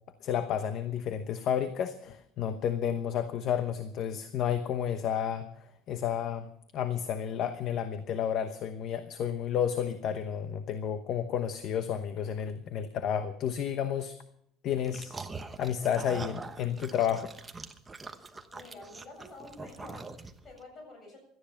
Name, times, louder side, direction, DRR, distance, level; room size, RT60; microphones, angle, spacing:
voice 1, 0.2-6.5 6.7-14.2 14.6-15.1 15.6-17.3, left 9 dB, 45° left, 9 dB, 1.0 m, -31 dB
sound 1, 14.8-20.6, right 3 dB, 15° right, 1.0 m, -43 dB
voice 2, 18.5-21.2, left 2 dB, 30° left, 2 dB, 7.7 m, -49 dB
17.5 x 13.0 x 5.8 m, 0.72 s
cardioid pair, 160°, 0 cm